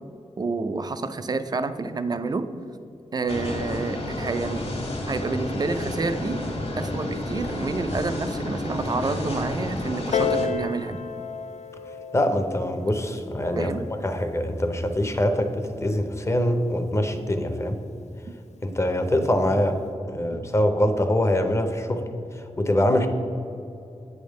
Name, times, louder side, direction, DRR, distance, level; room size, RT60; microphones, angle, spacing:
voice 1, 0.4-2.5 3.1-4.7 5.1-6.4 6.8-11.0 13.6-13.8 20.2-20.4, right 3 dB, 35° right, 11 dB, 0.4 m, -29 dB
sound 1, 3.3-10.5, left 1 dB, 60° left, 1.3 m, -31 dB
Piano, 10.1-15.3 16.1-16.2, left 6 dB, 75° left, 0.4 m, -32 dB
voice 2, 12.1-13.7 14.0-17.8 18.6-19.8 20.1-22.0 22.3-23.1, left 1 dB, 25° left, 7 dB, 0.6 m, -24 dB
8.5 x 3.5 x 6.4 m, 2.6 s
wide cardioid pair, 130°, 12 cm